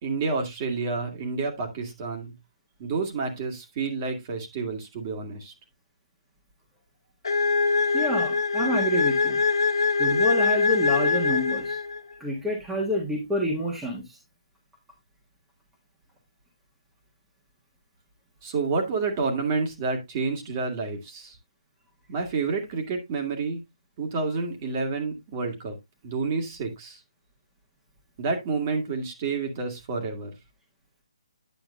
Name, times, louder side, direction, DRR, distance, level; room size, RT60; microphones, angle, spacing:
voice 1, 0.0-2.3 2.8-5.5 18.4-21.4 22.1-23.6 24.0-25.8 26.0-27.0 28.2-30.3, right 4 dB, 30° right, 3 dB, 2.1 m, -29 dB
sound 1, 7.2-12.1, left 4 dB, 55° left, 1.4 m, -23 dB
voice 2, 7.9-9.4 10.0-11.8 12.2-14.2, equal, 5° right, -1 dB, 1.6 m, -28 dB
9.4 x 7.7 x 2.5 m, 0.19 s
figure-of-eight pair, 140°, 3 cm